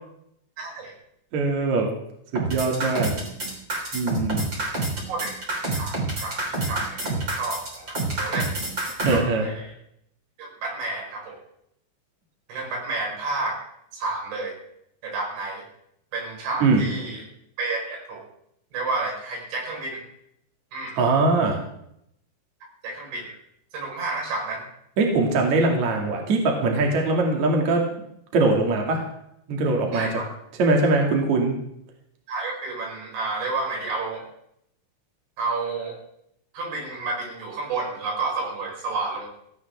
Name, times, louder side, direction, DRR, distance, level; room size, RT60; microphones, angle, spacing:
voice 1, 0.6-0.9 5.1-5.3 5.7-5.9 6.2-6.4 6.6-8.6 9.1-9.7 10.4-11.4 12.5-13.6 13.9-14.6 15.0-15.6 16.1-17.2 17.6-18.2 18.7-20.0 20.7-21.0 22.8-23.4 23.7-24.7 29.9-30.3 32.3-34.2 35.4-36.0 36.5-39.3, right 3 dB, 75° right, -1 dB, 7.2 m, -30 dB
voice 2, 1.3-1.9 2.3-3.1 3.9-4.4 9.0-9.5 16.6-16.9 21.0-21.6 25.0-27.8 28.3-29.0 29.5-30.1 30.6-31.6, right 3 dB, 45° right, 1 dB, 3.1 m, -21 dB
sound 1, 2.3-9.2, right 2 dB, 25° right, 3.5 m, -27 dB
17.0 x 16.0 x 3.6 m, 0.75 s
omnidirectional pair, 5.3 m